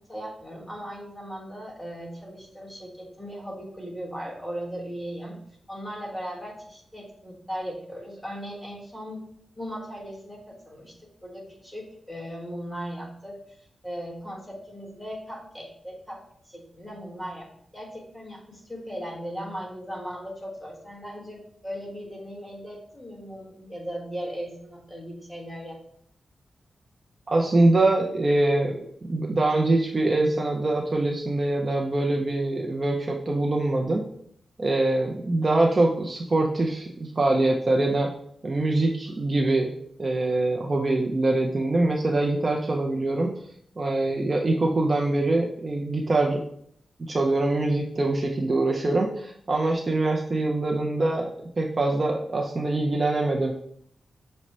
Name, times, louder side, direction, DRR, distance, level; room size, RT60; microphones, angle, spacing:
voice 1, 0.1-5.4 5.7-9.2 9.6-13.4 13.8-25.8, equal, 5° left, -3 dB, 1.1 m, -38 dB
voice 2, 27.3-28.8 29.1-34.0 34.6-38.1 38.4-39.7 40.0-43.3 43.8-46.4 47.0-53.5, right 2 dB, 30° right, 0 dB, 0.4 m, -24 dB
6.0 x 2.1 x 4.1 m, 0.68 s
wide cardioid pair, 160°, 0 cm